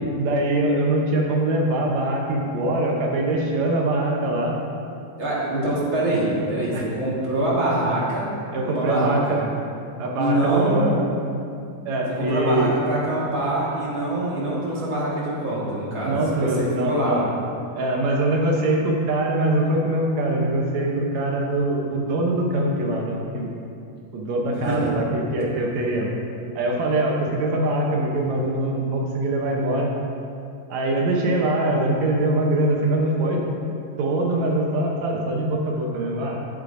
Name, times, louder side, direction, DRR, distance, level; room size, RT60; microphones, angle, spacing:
voice 1, 0.2-4.6 5.5-5.6 6.7-6.8 8.5-9.4 10.0-11.0 11.8-12.7 16.0-17.3 17.7-23.5 24.1-26.1 26.5-29.9 30.7-33.4 34.0-36.4, right 1 dB, 70° right, -1 dB, 1.7 m, -23 dB
voice 2, 5.2-8.3 8.7-9.4 10.2-10.9 12.1-17.2 24.5-24.8, right 1 dB, 45° right, -7 dB, 1.8 m, -24 dB
13.5 x 8.2 x 2.6 m, 2.5 s
omnidirectional pair, 4.2 m